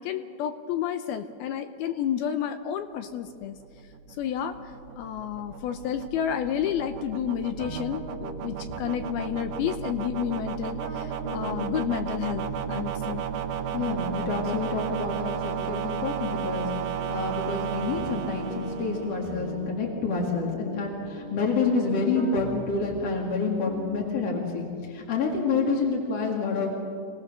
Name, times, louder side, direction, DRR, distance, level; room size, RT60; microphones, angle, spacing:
voice 1, 0.0-3.6 4.2-4.5 5.0-8.0 8.4-13.2, left 9 dB, 75° left, 8 dB, 2.4 m, -30 dB
FM Buildup, 3.3-19.5, right 8 dB, 85° right, 3.1 m, -34 dB
sound 1, 7.6-17.7 17.9-24.3, right 1 dB, 60° left, 0.4 m, -40 dB
voice 2, 13.7-16.7 17.1-26.7, left 4 dB, 45° left, -2 dB, 2.6 m, -28 dB
27.0 x 17.5 x 6.6 m, 2.3 s
omnidirectional pair, 4.8 m